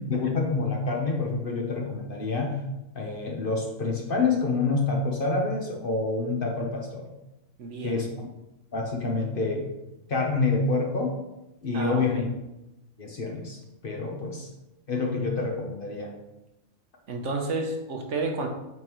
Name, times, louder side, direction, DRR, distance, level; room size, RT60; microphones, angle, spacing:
voice 1, 0.1-2.6 2.9-7.1 7.8-8.1 8.7-9.7 10.1-11.1 11.6-12.2 13.0-13.6 13.8-14.5 14.9-16.1, left 3 dB, 45° left, 0 dB, 1.0 m, -27 dB
voice 2, 7.6-8.0 11.7-12.3 17.1-18.5, right 3 dB, 65° right, 2 dB, 1.1 m, -31 dB
8.8 x 3.7 x 3.0 m, 0.94 s
omnidirectional pair, 1.4 m